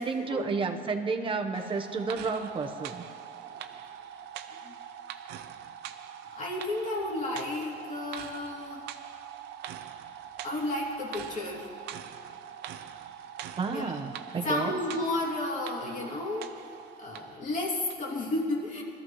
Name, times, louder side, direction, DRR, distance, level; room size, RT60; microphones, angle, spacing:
voice 1, 0.0-3.0 13.6-14.8, right 4 dB, 30° right, 5 dB, 1.0 m, -31 dB
sound 1, 1.5-17.4 17.9-18.0, right 9 dB, 85° right, 0.6 m, -43 dB
voice 2, 6.3-8.8 10.4-11.7 13.7-13.9 14.4-16.5 17.0-18.8, left 2 dB, 45° left, -3 dB, 2.8 m, -32 dB
21.5 x 13.5 x 3.1 m, 2.5 s
cardioid pair, 110°, 17 cm